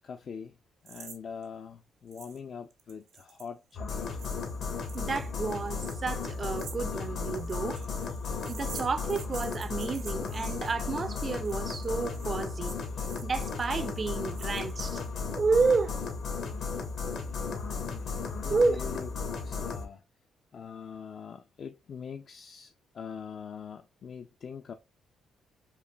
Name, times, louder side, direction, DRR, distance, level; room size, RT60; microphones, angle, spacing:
voice 1, 0.0-0.6 0.8-4.2 17.7-19.1 19.4-20.0 20.5-24.7, left 6 dB, 55° left, 0.3 m, -43 dB
sound 1, 0.9-1.2 1.4-1.5 2.1-2.4 2.7-15.1, right 7 dB, 80° right, 0.7 m, -49 dB
sound 2, 3.7-19.9, left 5 dB, 70° left, 1.0 m, -35 dB
voice 2, 4.9-7.8 8.5-12.8 13.2-15.0 15.4-16.0 18.5-18.8, right 4 dB, 35° right, 0.4 m, -30 dB
5.1 x 2.5 x 2.2 m
cardioid pair, 90°, 0 cm